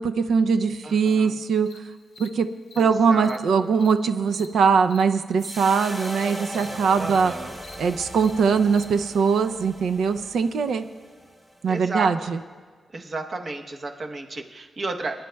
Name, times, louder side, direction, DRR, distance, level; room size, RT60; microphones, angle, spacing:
voice 1, 0.0-1.7 2.2-2.5 2.8-7.3 7.8-10.8 11.6-12.4, right 5 dB, 80° right, 9 dB, 0.5 m, -21 dB
voice 2, 0.8-1.3 2.8-3.4 7.0-7.5 11.7-12.1 12.9-15.2, right 3 dB, 35° right, 3 dB, 0.8 m, -32 dB
Cricket, 1.0-1.1 1.7-1.8 2.2-2.3 2.7-2.8 3.2-3.4 3.8-3.9 4.3-4.5 4.9-5.0 5.4-5.6 6.0-6.1 6.5-6.7 7.1-7.2 7.6-7.8 8.2-8.3 8.7-8.8, left 4 dB, 85° left, 0.7 m, -46 dB
sound 1, 5.4-11.8, equal, 10° right, 1.1 m, -39 dB
24.5 x 10.5 x 2.3 m, 1.5 s
wide cardioid pair, 165°, 0 cm